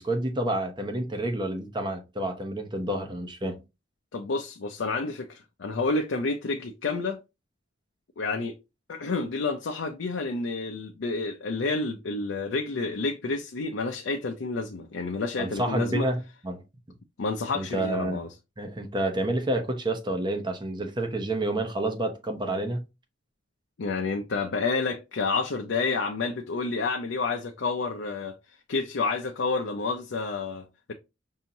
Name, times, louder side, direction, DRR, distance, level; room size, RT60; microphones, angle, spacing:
voice 1, 0.0-3.6 15.4-16.6 17.5-18.2 18.6-22.8, right 1 dB, 25° right, 0.8 m, -29 dB
voice 2, 4.1-7.2 8.2-8.5 8.9-16.1 17.2-18.3 23.8-28.3 28.7-30.9, left 3 dB, 75° left, 0.5 m, -29 dB
5.5 x 2.8 x 2.6 m
head